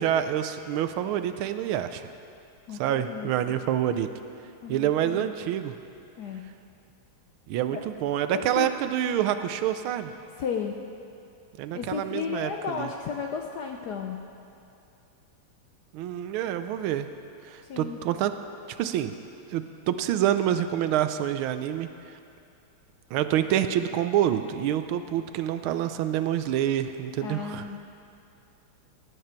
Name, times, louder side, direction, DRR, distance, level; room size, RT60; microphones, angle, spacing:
voice 1, 0.0-2.0 2.7-4.1 4.7-5.7 7.5-10.1 11.6-12.9 15.9-17.1 17.5-18.3 18.8-19.1 19.5-21.9 23.1-27.7, right 11 dB, 80° right, 10 dB, 1.4 m, -27 dB
voice 2, 2.7-3.6 4.6-5.3 6.2-6.5 7.7-7.8 8.3-8.7 10.4-10.8 11.7-14.2 17.7-18.0 27.2-27.8, left 6 dB, 70° left, 2 dB, 1.0 m, -34 dB
18.0 x 8.5 x 4.4 m, 2.5 s
omnidirectional pair, 2.3 m